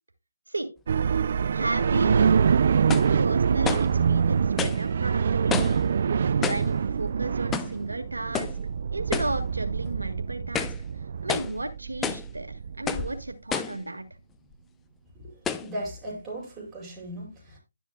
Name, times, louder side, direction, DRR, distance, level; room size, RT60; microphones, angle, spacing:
sound 1, 0.9-13.3, right 6 dB, 50° right, 0.4 m, -25 dB
voice 1, 1.5-2.5 3.2-5.9 6.4-8.5 8.9-10.7 11.2-14.0, right 2 dB, 85° right, 1.8 m, -33 dB
sound 2, 2.9-3.2 3.6-3.9 4.6-4.8 5.5-5.9 6.4-6.7 7.5-7.8 8.3-8.6 9.1-9.4 9.8-9.9 10.4-10.8 11.3-11.6 12.0-12.3 12.9-13.1 13.5-13.8 14.5-14.6 15.4-15.7, left 7 dB, 10° left, 0.6 m, -30 dB
voice 2, 15.6-17.6, right 1 dB, 15° right, 5.1 m, -37 dB
12.0 x 10.0 x 2.2 m
figure-of-eight pair, 150°, 0 cm